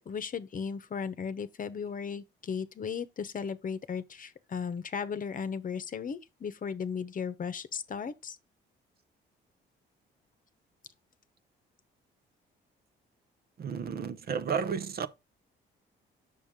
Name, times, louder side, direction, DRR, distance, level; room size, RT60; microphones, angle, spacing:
voice 1, 0.1-8.4, left 6 dB, 45° left, 0.9 m, -36 dB
voice 2, 13.6-15.1, right 6 dB, 50° right, 0.8 m, -32 dB
7.3 x 6.3 x 3.6 m
cardioid pair, 90°, 20 cm